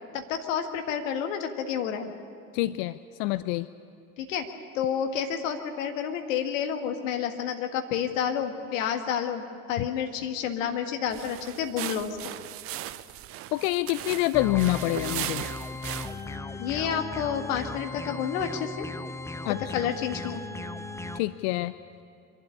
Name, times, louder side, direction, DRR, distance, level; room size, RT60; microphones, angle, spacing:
voice 1, 0.1-2.1 4.2-4.5 4.7-9.4 9.7-12.2 16.6-18.9 19.5-20.4, left 8 dB, 60° left, 6 dB, 1.8 m, -30 dB
voice 2, 2.5-3.7 9.8-9.9 13.5-15.4 19.4-19.6 21.2-21.7, left 18 dB, 40° left, 15 dB, 0.5 m, -26 dB
sound 1, 11.1-16.4, right 14 dB, 30° right, 0.6 m, -37 dB
sound 2, 14.3-21.2, left 3 dB, 5° left, 0.8 m, -37 dB
24.5 x 12.0 x 9.9 m, 2.4 s
figure-of-eight pair, 75°, 43 cm